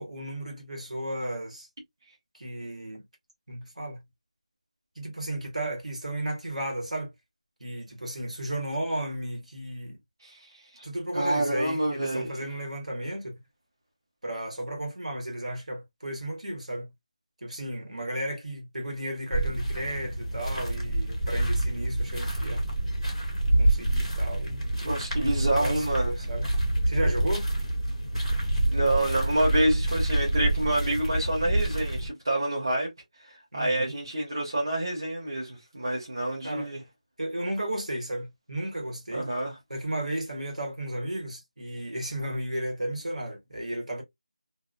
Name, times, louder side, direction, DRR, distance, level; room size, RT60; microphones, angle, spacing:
voice 1, 0.0-1.7 2.3-3.0 3.5-4.0 4.9-7.1 7.6-10.0 10.8-13.4 14.2-16.9 17.4-22.6 23.6-24.7 25.5-26.5 26.9-27.5 33.5-33.9 36.4-36.7 37.2-39.3 39.7-44.0, right 1 dB, 65° right, 1.4 m, -34 dB
voice 2, 11.1-12.3 24.8-26.1 28.7-32.9 33.2-36.8 39.1-39.5, right 1 dB, 30° right, 1.0 m, -27 dB
sound 1, 19.3-32.1, right 1 dB, ahead, 0.4 m, -27 dB
2.6 x 2.6 x 2.4 m
figure-of-eight pair, 180°, 4 cm